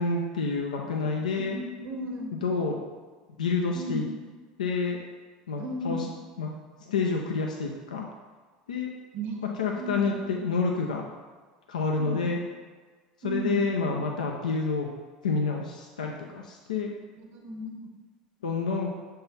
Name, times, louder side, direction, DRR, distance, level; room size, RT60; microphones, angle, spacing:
voice 1, 0.0-1.6 2.4-2.8 3.4-4.0 4.6-5.0 5.5-6.0 6.4-6.5 6.9-8.1 8.7-8.9 9.6-11.0 11.7-12.4 13.2-14.9 15.2-16.9 18.4-18.9, left 4 dB, 85° left, 0 dB, 0.6 m, -28 dB
voice 2, 1.4-2.3 3.7-4.0 5.6-6.0 9.1-9.5 9.8-10.1 12.0-12.2 13.2-13.7 17.3-17.8, right 1 dB, 65° right, 2 dB, 1.4 m, -35 dB
6.9 x 3.8 x 4.1 m, 1.4 s
hypercardioid pair, 80°, 4 cm